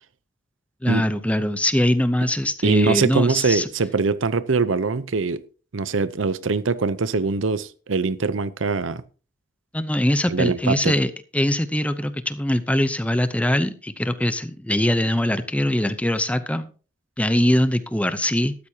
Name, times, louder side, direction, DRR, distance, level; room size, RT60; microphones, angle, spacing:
voice 1, 0.8-3.7 9.7-16.7 17.2-18.5, left 1 dB, 5° left, 0.7 m, -22 dB
voice 2, 2.6-5.4 5.7-9.0 10.3-10.9, right 4 dB, 85° right, 0.8 m, -22 dB
13.5 x 13.0 x 2.9 m
head